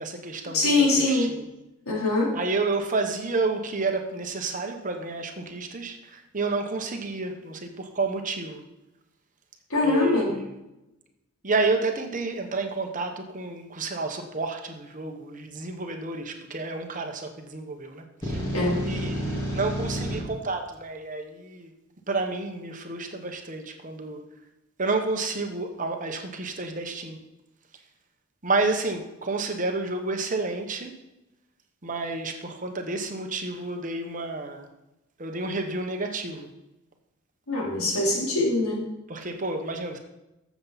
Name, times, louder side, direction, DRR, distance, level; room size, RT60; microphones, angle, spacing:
voice 1, 0.0-1.5 2.3-8.6 9.8-10.5 11.4-18.5 18.8-21.7 22.1-24.2 24.8-27.2 28.4-31.0 31.8-34.7 35.2-36.5 39.1-40.0, right 3 dB, 35° right, 5 dB, 1.1 m, -30 dB
voice 2, 0.5-1.3 1.9-2.3 9.7-10.3 18.5-18.7 37.5-38.8, left 2 dB, 85° left, -4 dB, 3.7 m, -23 dB
sound 1, 18.2-20.2, equal, 20° left, 3.2 m, -30 dB
14.0 x 7.2 x 4.1 m, 0.95 s
head